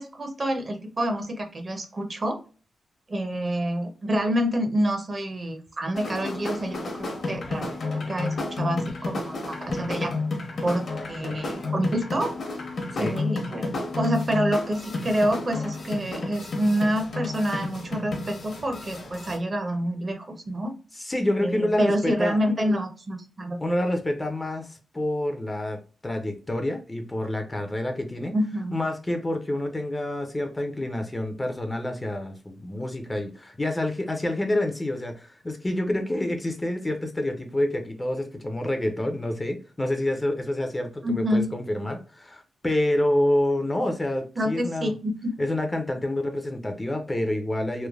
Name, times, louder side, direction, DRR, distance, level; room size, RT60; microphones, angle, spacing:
voice 1, 0.0-2.4 3.1-10.1 10.6-12.3 13.0-20.7 21.4-23.6 28.3-28.8 41.0-41.5 44.4-45.3, equal, 30° right, 5 dB, 0.6 m, -27 dB
sound 1, 5.9-19.4, left 3 dB, 60° left, 0.8 m, -31 dB
voice 2, 21.0-22.4 23.6-28.3 28.7-44.9 45.4-47.9, left 1 dB, 15° left, 4 dB, 0.4 m, -28 dB
3.1 x 2.1 x 2.3 m, 0.36 s
wide cardioid pair, 130°, 0 cm